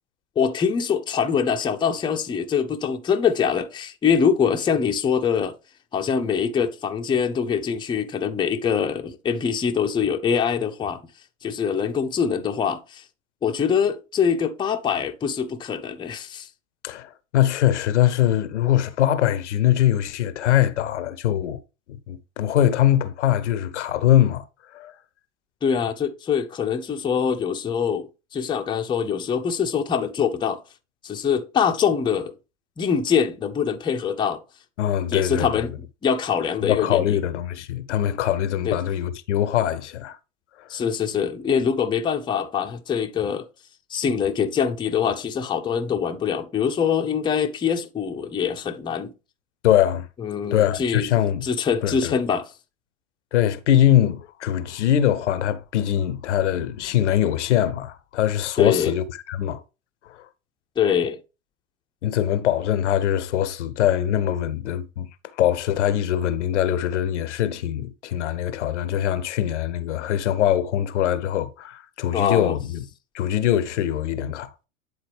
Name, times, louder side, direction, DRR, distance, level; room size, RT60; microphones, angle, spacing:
voice 1, 0.4-5.5 5.9-11.0 11.4-13.0 13.4-16.5 25.6-28.1 28.3-30.6 31.0-32.3 32.8-34.4 35.1-35.7 36.0-37.2 38.6-38.8 40.7-43.5 43.9-49.1 50.2-51.1 51.4-52.5 58.6-58.9 60.8-61.2 72.1-72.6, left 7 dB, 10° left, 0.6 m, -24 dB
voice 2, 16.8-21.6 21.9-24.4 24.7-25.0 34.8-35.6 36.6-40.2 40.6-40.8 49.6-50.1 50.5-51.5 51.8-52.2 53.3-59.6 60.1-60.3 62.0-65.1 65.4-72.8 73.1-74.5, left 11 dB, 60° left, 0.8 m, -22 dB
9.4 x 4.0 x 3.4 m
figure-of-eight pair, 85°, 40 cm